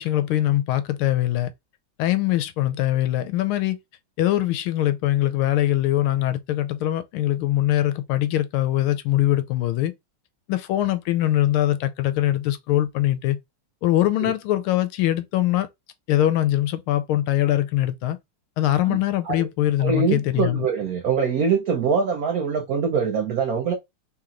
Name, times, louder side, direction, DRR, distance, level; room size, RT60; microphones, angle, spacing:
voice 1, 0.0-1.5 2.0-3.8 4.2-9.9 10.5-13.4 13.8-15.7 16.1-18.2 18.6-20.7, left 14 dB, 80° left, 1.4 m, -22 dB
voice 2, 19.8-23.7, right 5 dB, 85° right, 0.7 m, -23 dB
3.6 x 3.0 x 3.7 m
omnidirectional pair, 2.4 m